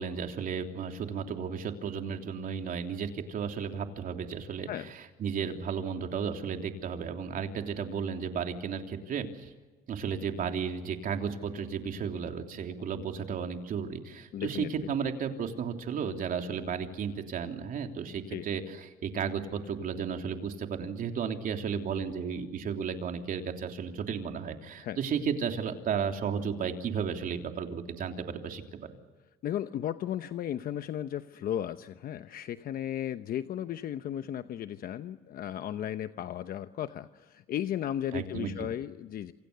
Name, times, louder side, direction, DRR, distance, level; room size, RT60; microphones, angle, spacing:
voice 1, 0.0-9.5 9.9-28.9 38.1-38.5, right 6 dB, 55° right, 4 dB, 3.2 m, -34 dB
voice 2, 14.3-14.7 18.3-18.5 24.8-25.0 29.4-39.3, left 11 dB, 60° left, 10 dB, 0.9 m, -35 dB
28.0 x 27.5 x 6.9 m, 1.3 s
cardioid pair, 110°, 17 cm